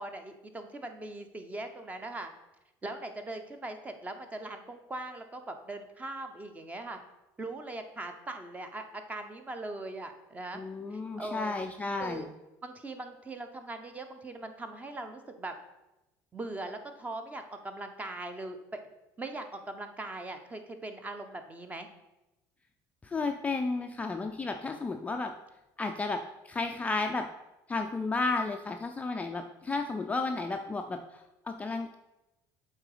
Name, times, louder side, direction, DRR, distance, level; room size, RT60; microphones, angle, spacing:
voice 1, 0.0-2.3 2.8-7.0 7.4-10.6 10.9-11.6 12.0-12.3 12.6-15.5 16.3-18.8 19.2-21.9, right 2 dB, 15° right, 7 dB, 0.7 m, -40 dB
voice 2, 10.5-12.3 23.0-25.3 25.8-27.3 27.7-32.0, left 3 dB, 15° left, 4 dB, 0.4 m, -33 dB
7.6 x 3.8 x 4.9 m, 0.98 s
cardioid pair, 135°, 9 cm